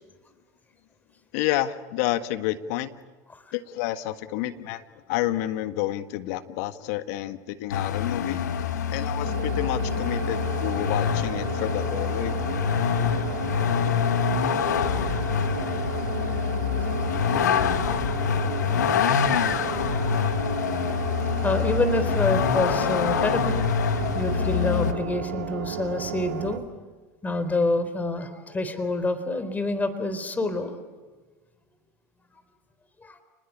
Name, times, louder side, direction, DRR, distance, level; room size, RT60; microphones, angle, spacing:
voice 1, 1.3-2.9 3.5-4.8 5.1-12.4, left 14 dB, 65° left, 11 dB, 1.7 m, -29 dB
Vehicle, 7.7-24.9, left 7 dB, 85° left, 1.8 m, -25 dB
sound 1, 9.2-26.6, right 10 dB, 85° right, 2.3 m, -34 dB
voice 2, 21.4-23.9 24.1-26.6 27.2-30.7 32.3-32.4 33.0-33.2, left 2 dB, 20° left, 11 dB, 4.1 m, -27 dB
29.5 x 20.5 x 8.7 m, 1.4 s
hypercardioid pair, 90°, 9 cm